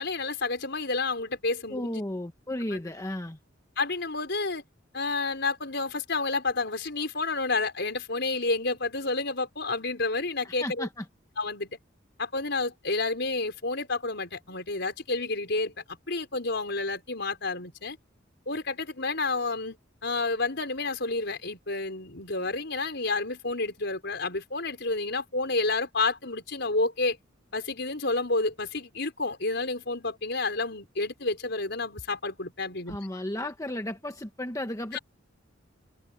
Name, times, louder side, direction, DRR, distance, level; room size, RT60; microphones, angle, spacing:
voice 1, 0.0-2.0 2.7-2.8 3.8-4.6 4.9-10.9 11.4-11.8 12.2-15.7 16.1-18.0 18.5-19.8 20.0-27.2 27.5-33.0 34.9-35.0, left 3 dB, 60° left, 5.3 m, -30 dB
voice 2, 1.7-3.4 10.4-11.0 32.9-35.0, left 1 dB, 15° left, 1.4 m, -34 dB
head